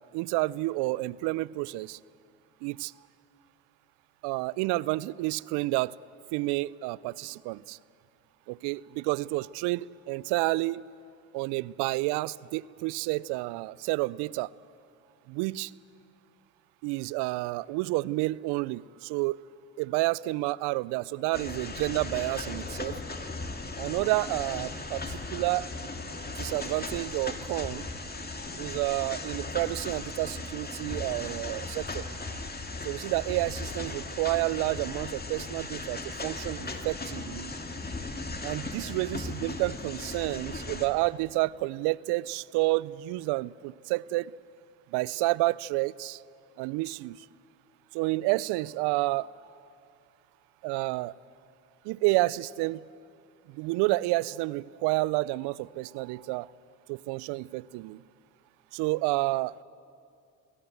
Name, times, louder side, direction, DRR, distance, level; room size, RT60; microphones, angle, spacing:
voice 1, 0.1-2.0 2.6-2.9 4.2-5.9 6.3-7.8 8.5-10.8 11.3-14.5 15.3-15.7 16.8-19.4 19.8-23.0 23.8-25.7 26.4-27.9 28.6-32.0 32.8-37.5 38.4-44.3 44.9-46.2 46.6-47.3 47.9-49.3 50.6-51.1 51.8-52.8 53.5-56.5 56.9-58.0 58.7-59.5, right 20 dB, 70° right, 23 dB, 0.6 m, -30 dB
sound 1, 21.3-40.9, left 3 dB, 20° left, 2.4 m, -37 dB
24.0 x 17.0 x 7.9 m, 2.4 s
hypercardioid pair, 60°, 42 cm